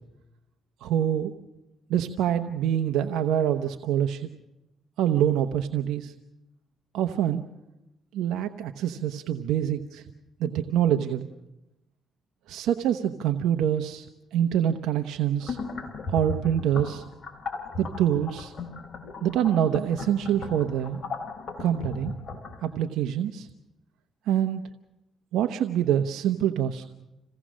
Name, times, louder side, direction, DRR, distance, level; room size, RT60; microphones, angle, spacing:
voice 1, 0.8-1.3 1.9-4.3 5.0-6.1 6.9-7.4 8.1-10.1 10.4-11.3 12.5-15.6 16.1-17.0 17.8-18.5 19.2-21.0 21.6-22.1 22.6-23.5 24.3-24.6 25.3-27.0, right 10 dB, 85° right, 6 dB, 0.9 m, -25 dB
sound 1, 15.4-22.6, left 3 dB, 45° left, 3.7 m, -37 dB
27.5 x 17.5 x 6.3 m, 0.92 s
cardioid pair, 90°, 0 cm